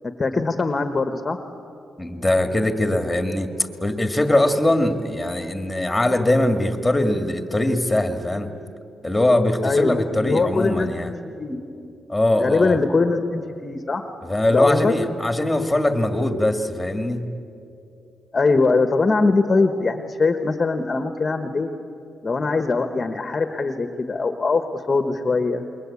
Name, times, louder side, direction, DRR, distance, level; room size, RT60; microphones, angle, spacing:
voice 1, 0.0-1.4 9.6-11.1 11.4-11.7 12.4-14.0 14.5-14.9 18.3-21.7 22.2-25.6, left 3 dB, 30° left, 8 dB, 1.2 m, -22 dB
voice 2, 2.0-3.5 3.8-8.5 9.0-11.1 12.1-12.8 14.2-17.3, left 1 dB, 10° left, 7 dB, 2.0 m, -21 dB
27.5 x 22.0 x 8.5 m, 2.7 s
cardioid pair, 110°, 0 cm